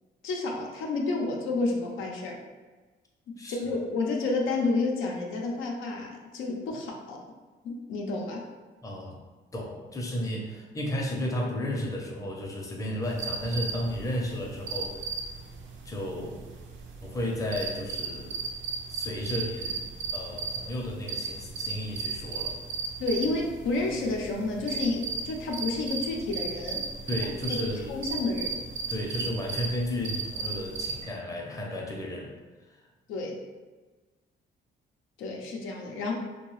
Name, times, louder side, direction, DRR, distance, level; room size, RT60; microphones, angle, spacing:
voice 1, 0.2-2.4 3.5-7.2 7.6-8.4 23.0-26.8 27.5-27.6 27.9-28.6 33.1-33.4 35.2-36.1, left 3 dB, 85° left, 0 dB, 0.5 m, -30 dB
voice 2, 3.4-3.7 8.8-9.1 9.5-15.0 15.9-16.4 17.0-18.4 18.9-19.8 20.1-22.6 27.1-27.9 28.9-32.3, equal, 15° left, -1 dB, 0.6 m, -33 dB
sound 1, 13.0-31.0, right 4 dB, 70° right, 0.5 m, -36 dB
2.7 x 2.2 x 3.1 m, 1.3 s
cardioid pair, 90°, 20 cm